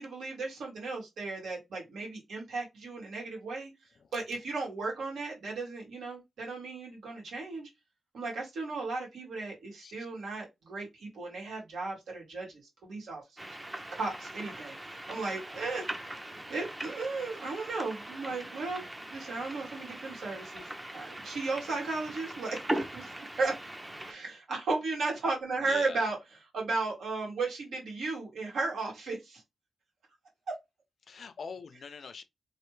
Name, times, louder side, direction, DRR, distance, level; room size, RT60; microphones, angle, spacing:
voice 1, 0.0-3.7 4.1-7.7 8.1-13.2 13.9-15.9 16.5-18.8 19.1-20.7 20.9-23.6 24.1-26.2 26.5-29.4 30.5-30.6, right 3 dB, 80° right, 1.9 m, -35 dB
sound 1, 13.4-24.1, right 1 dB, 10° right, 0.5 m, -40 dB
voice 2, 25.6-26.1 31.1-32.2, left 5 dB, 50° left, 0.4 m, -43 dB
3.3 x 2.6 x 3.1 m
wide cardioid pair, 170°, 0 cm